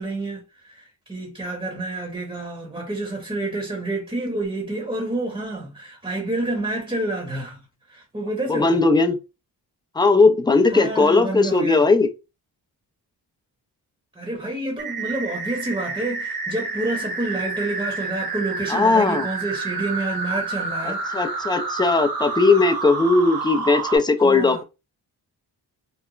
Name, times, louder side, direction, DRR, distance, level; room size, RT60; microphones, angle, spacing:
voice 1, 0.0-7.6 7.9-8.8 10.7-11.9 14.1-21.0 24.2-24.6, right 2 dB, 15° right, 0.9 m, -29 dB
voice 2, 8.5-9.2 10.0-12.1 18.7-19.3 21.1-24.6, left 3 dB, 10° left, 0.4 m, -18 dB
sound 1, 14.8-24.0, right 4 dB, 60° right, 0.8 m, -29 dB
3.0 x 2.1 x 2.4 m
cardioid pair, 65°, 41 cm